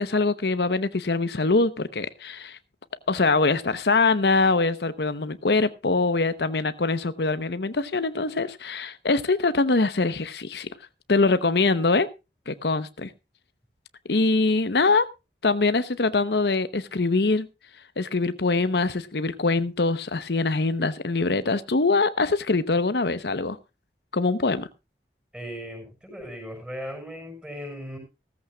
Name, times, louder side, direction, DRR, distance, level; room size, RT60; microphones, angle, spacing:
voice 1, 0.0-2.6 3.1-10.7 11.1-12.1 12.5-13.1 14.1-15.1 15.4-17.5 18.0-23.6 24.1-24.7, left 3 dB, 75° left, 0.8 m, -23 dB
voice 2, 25.3-28.0, equal, 5° right, 6.2 m, -37 dB
16.5 x 14.5 x 2.3 m
head